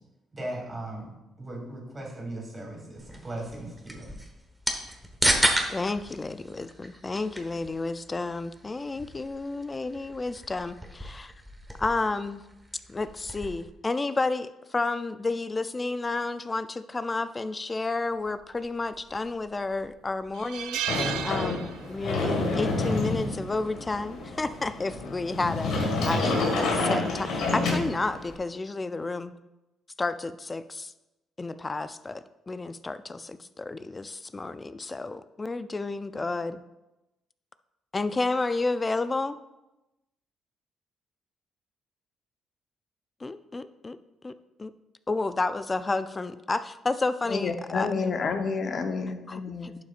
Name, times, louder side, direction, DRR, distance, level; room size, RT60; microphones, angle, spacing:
voice 1, 0.3-1.1 1.4-4.1, right 1 dB, 25° right, -1 dB, 2.7 m, -38 dB
sound 1, 3.0-13.7, right 1 dB, 5° right, 1.2 m, -33 dB
voice 2, 5.7-11.3 11.8-12.4 12.9-29.3 30.0-30.9 31.4-36.6 37.9-39.4 43.2-44.0 44.2-44.3 44.6-44.7 45.1-47.9 49.3-49.7, left 3 dB, 25° left, 12 dB, 0.4 m, -31 dB
sound 2, 18.9-19.5 19.8-19.9 20.3-22.2 22.4-22.7 23.9-24.2, right 10 dB, 85° right, 0.4 m, -34 dB
Sliding door, 20.9-28.3, left 2 dB, 90° left, 1.8 m, -28 dB
voice 3, 47.3-49.8, left 4 dB, 55° left, 6 dB, 0.9 m, -29 dB
11.0 x 6.2 x 2.5 m, 0.97 s
cardioid pair, 90°, 0 cm